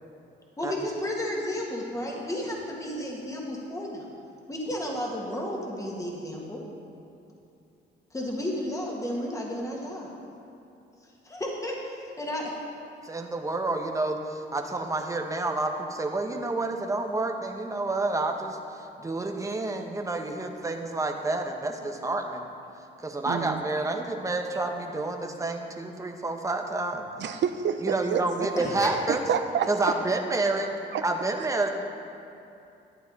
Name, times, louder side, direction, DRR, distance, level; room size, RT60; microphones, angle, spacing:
voice 1, 0.6-4.1 4.5-6.6 8.1-10.1 11.2-12.6 28.6-28.9, left 1 dB, 15° left, -2 dB, 2.0 m, -32 dB
voice 2, 13.0-22.5 23.0-27.1 27.8-29.2 29.7-30.7 31.0-31.7, right 2 dB, 15° right, 3 dB, 1.1 m, -29 dB
voice 3, 23.3-23.6 27.2-28.2 29.3-29.7 30.9-31.0, right 8 dB, 65° right, 9 dB, 0.7 m, -28 dB
12.5 x 9.0 x 4.1 m, 2.7 s
cardioid pair, 90°, 20 cm